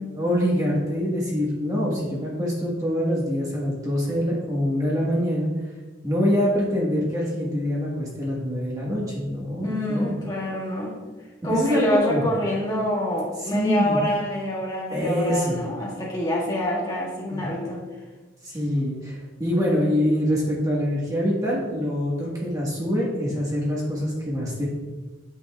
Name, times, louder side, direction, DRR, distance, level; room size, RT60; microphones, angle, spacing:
voice 1, 0.1-5.5 6.0-10.2 11.5-12.2 13.4-14.0 14.9-15.6 17.3-17.5 18.4-24.7, equal, 20° right, -5 dB, 1.4 m, -25 dB
voice 2, 9.6-11.0 11.4-17.8, equal, 20° left, -5 dB, 1.7 m, -26 dB
8.5 x 6.8 x 2.3 m, 1.3 s
head